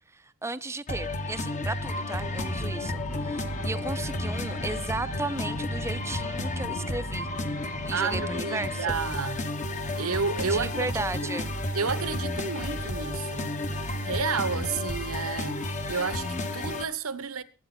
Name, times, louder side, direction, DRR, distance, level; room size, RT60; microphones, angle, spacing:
voice 1, 0.1-7.3 7.9-8.9 10.5-11.5, right 2 dB, 15° right, 0.6 m, -35 dB
sound 1, 0.9-16.8, left 1 dB, 35° left, 1.4 m, -32 dB
sound 2, 2.2-7.9, left 1 dB, 75° left, 2.0 m, -41 dB
voice 2, 7.9-9.4 10.0-11.0 11.7-13.5 14.0-17.4, right 5 dB, 85° right, 1.1 m, -31 dB
22.0 x 9.1 x 4.3 m
head